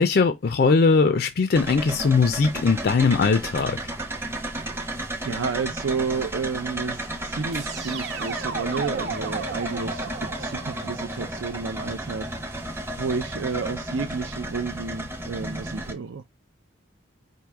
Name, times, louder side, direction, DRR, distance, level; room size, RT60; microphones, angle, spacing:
voice 1, 0.0-3.8, left 4 dB, 50° left, 0.4 m, -20 dB
sound 1, 1.5-15.9, right 1 dB, 10° right, 0.6 m, -33 dB
voice 2, 4.6-12.2 12.5-12.6 13.0-16.2, right 5 dB, 80° right, 0.5 m, -31 dB
sound 2, 7.5-12.4, right 5 dB, 60° right, 0.9 m, -36 dB
4.6 x 2.7 x 3.4 m
head